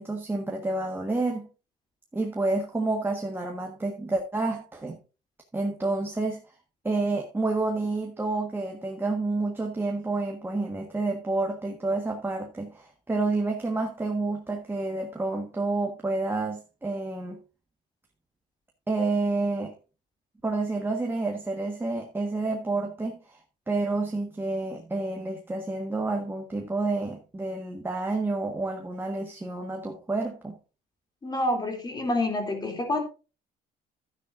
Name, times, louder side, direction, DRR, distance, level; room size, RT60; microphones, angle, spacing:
voice 1, 0.0-1.5 2.1-5.0 5.5-6.4 6.8-17.4 18.9-19.7 20.4-23.4 23.7-30.5, right 3 dB, 15° right, 1 dB, 1.5 m, -29 dB
voice 2, 31.2-33.0, left 1 dB, 25° left, 3 dB, 3.0 m, -27 dB
12.0 x 9.8 x 2.6 m, 0.33 s
cardioid pair, 110°, 17 cm